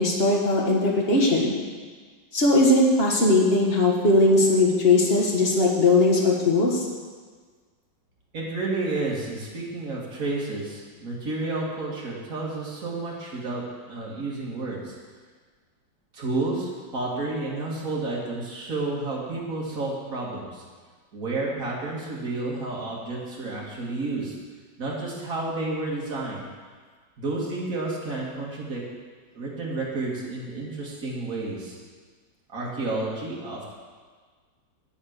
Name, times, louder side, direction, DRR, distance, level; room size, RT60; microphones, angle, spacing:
voice 1, 0.0-1.5 2.3-6.9, left 2 dB, 35° left, -2 dB, 1.7 m, -19 dB
voice 2, 8.3-14.9 16.1-20.6 21.1-24.4 24.8-26.5 27.2-28.8 29.3-31.8 32.5-33.7, right 2 dB, 50° right, -4 dB, 2.5 m, -31 dB
8.7 x 8.2 x 6.6 m, 1.5 s
omnidirectional pair, 2.0 m